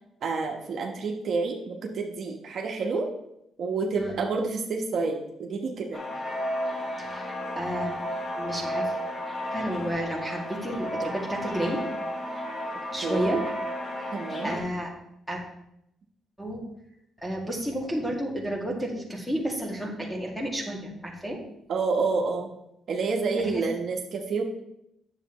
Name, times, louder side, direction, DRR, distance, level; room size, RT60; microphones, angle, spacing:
voice 1, 0.2-3.1 3.6-6.0 13.0-13.4 14.1-14.6 21.7-22.5 22.9-24.4, right 4 dB, 60° right, 1 dB, 1.2 m, -29 dB
sound 1, 5.9-14.6, equal, 35° left, 1.6 m, -33 dB
voice 2, 7.0-7.9 8.4-8.9 9.5-11.8 12.9-13.4 14.4-14.9 15.3-15.4 16.4-16.6 17.2-21.4 23.5-23.6, equal, ahead, -1 dB, 2.2 m, -31 dB
9.8 x 7.3 x 3.1 m, 0.79 s
cardioid pair, 90°, 0 cm